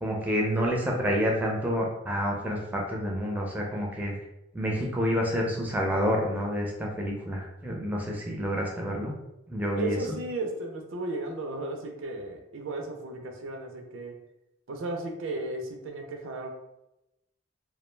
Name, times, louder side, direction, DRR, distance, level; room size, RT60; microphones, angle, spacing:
voice 1, 0.0-4.1 4.5-9.1 9.5-10.0, equal, 10° right, -1 dB, 0.4 m, -28 dB
voice 2, 9.7-14.1 14.7-16.5, right 2 dB, 80° right, 4 dB, 0.4 m, -34 dB
2.3 x 2.1 x 3.1 m, 0.89 s
head